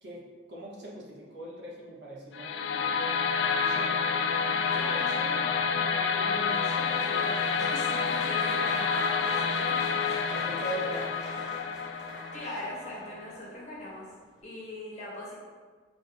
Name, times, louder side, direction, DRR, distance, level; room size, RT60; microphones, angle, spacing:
voice 1, 0.0-2.9 3.6-4.0 10.3-11.4, right 2 dB, 60° right, -4 dB, 1.0 m, -41 dB
sound 1, 2.3-13.4, left 5 dB, 70° left, 0.3 m, -29 dB
voice 2, 4.7-10.2 10.4-10.5 12.3-14.1 14.4-15.3, left 1 dB, 35° left, -7 dB, 1.3 m, -41 dB
Applause, 5.1-13.1 13.7-14.0 14.2-14.4, equal, 5° right, 0.8 m, -44 dB
4.0 x 3.6 x 3.4 m, 1.5 s
head